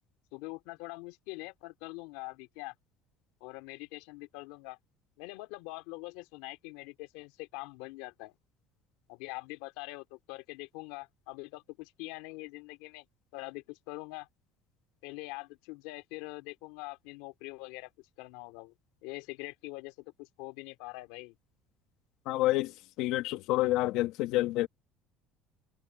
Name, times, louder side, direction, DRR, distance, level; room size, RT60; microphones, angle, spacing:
voice 1, 0.3-2.7 3.4-4.8 5.2-8.3 9.1-13.0 13.3-14.3 15.0-17.9 18.2-18.7 19.0-21.4, left 23 dB, 85° left, 2.8 m, -44 dB
voice 2, 22.3-22.7 23.0-24.7, left 17 dB, 70° left, 1.9 m, -28 dB
cardioid pair, 130°, 0 cm